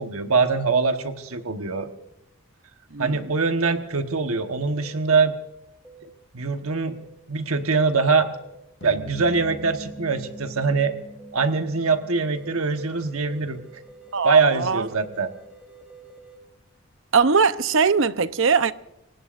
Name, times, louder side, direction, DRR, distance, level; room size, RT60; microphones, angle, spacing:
voice 1, 0.0-1.9 3.0-5.3 6.3-6.9 7.3-8.4 8.8-10.9 11.3-13.6 14.2-15.3, right 4 dB, 85° right, 1.2 m, -23 dB
voice 2, 2.9-3.3 14.1-14.9 17.1-18.7, right 5 dB, 65° right, 0.7 m, -21 dB
sound 1, 4.8-5.0 5.8-6.1 6.9-7.1 7.9-8.1 8.3-8.5 8.8-9.0 9.3-9.5 9.8-10.0 10.2-10.4 10.7-10.9 11.2-11.4 11.7-11.9 12.1-16.4, right 4 dB, 5° right, 3.7 m, -48 dB
sound 2, 8.8-13.2, equal, 55° left, 1.8 m, -42 dB
25.5 x 19.0 x 2.5 m
head